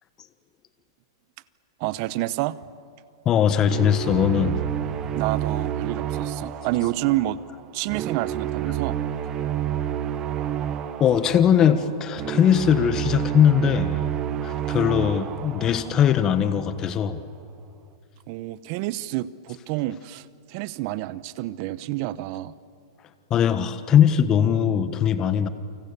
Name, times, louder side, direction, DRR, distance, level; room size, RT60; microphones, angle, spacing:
voice 1, 1.8-2.6 5.1-7.4 7.7-9.0 18.3-22.5, right 16 dB, 45° right, 17 dB, 0.8 m, -28 dB
voice 2, 3.2-4.6 11.0-14.0 14.4-17.2 23.3-25.5, left 9 dB, 25° left, 11 dB, 1.2 m, -20 dB
sound 1, 3.6-16.7, right 10 dB, 25° right, 1.1 m, -29 dB
29.5 x 25.0 x 6.9 m, 2.5 s
hypercardioid pair, 150°, 2 cm